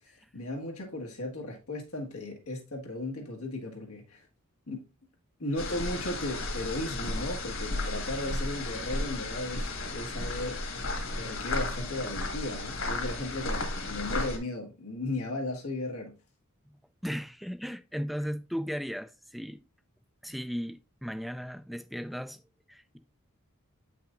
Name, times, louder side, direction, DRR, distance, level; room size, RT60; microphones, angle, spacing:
voice 1, 0.3-4.3 4.7-4.8 5.4-10.6 11.1-16.1, left 2 dB, 85° left, 1.6 m, -36 dB
sound 1, 5.6-14.4, left 2 dB, 60° left, 1.7 m, -34 dB
voice 2, 17.0-19.6 20.2-22.4 22.7-23.0, equal, ahead, 0.4 m, -36 dB
8.6 x 5.8 x 2.5 m
head